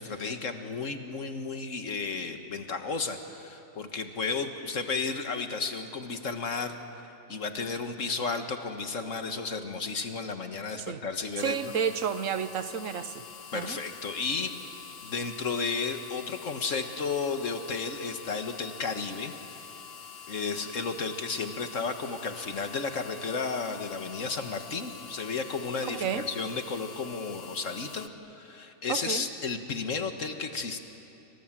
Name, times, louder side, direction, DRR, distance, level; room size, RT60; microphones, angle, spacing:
voice 1, 0.0-6.8 7.3-11.6 13.5-14.5 15.0-19.3 20.3-30.8, left 4 dB, 70° left, 2.0 m, -33 dB
sound 1, 11.4-28.1, left 7 dB, 50° left, 1.0 m, -46 dB
voice 2, 11.4-13.3 13.5-13.8 25.8-26.3 28.9-29.3, right 7 dB, 80° right, 1.4 m, -31 dB
29.5 x 25.5 x 7.6 m
omnidirectional pair, 1.4 m